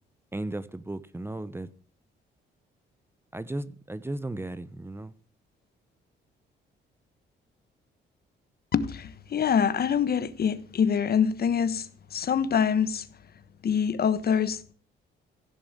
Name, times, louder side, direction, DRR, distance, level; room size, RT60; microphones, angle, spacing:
voice 1, 0.3-1.7 3.3-5.1, right 1 dB, 10° right, 0.8 m, -35 dB
voice 2, 8.7-13.1 13.6-14.7, left 7 dB, 50° left, 1.2 m, -25 dB
16.0 x 7.0 x 8.2 m
cardioid pair, 90°, 20 cm